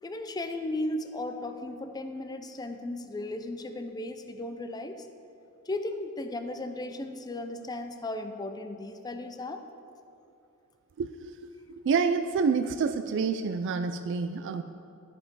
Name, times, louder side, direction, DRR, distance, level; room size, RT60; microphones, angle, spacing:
voice 1, 0.0-5.1 5.7-9.6, left 2 dB, 20° left, 7 dB, 0.4 m, -36 dB
voice 2, 11.8-14.6, right 5 dB, 55° right, 8 dB, 0.3 m, -27 dB
13.0 x 5.4 x 4.7 m, 2.6 s
head